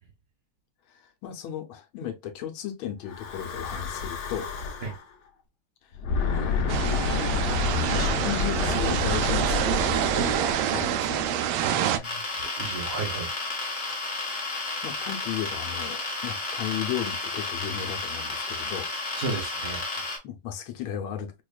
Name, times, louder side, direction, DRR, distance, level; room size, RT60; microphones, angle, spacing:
voice 1, 0.9-4.5 5.8-6.0 6.3-7.6 7.9-11.3 14.8-18.9 20.2-21.3, left 10 dB, 80° left, 1.5 m, -35 dB
Breathing / Wind, 3.1-5.0 5.9-11.3, left 5 dB, 65° left, 1.4 m, -29 dB
sound 1, 6.7-12.0, right 10 dB, 85° right, 1.4 m, -26 dB
voice 2, 11.6-13.9 19.1-20.1, right 4 dB, 70° right, 0.6 m, -35 dB
sound 2, 12.0-20.2, left 3 dB, 25° left, 1.3 m, -32 dB
5.0 x 2.3 x 2.3 m
omnidirectional pair, 2.2 m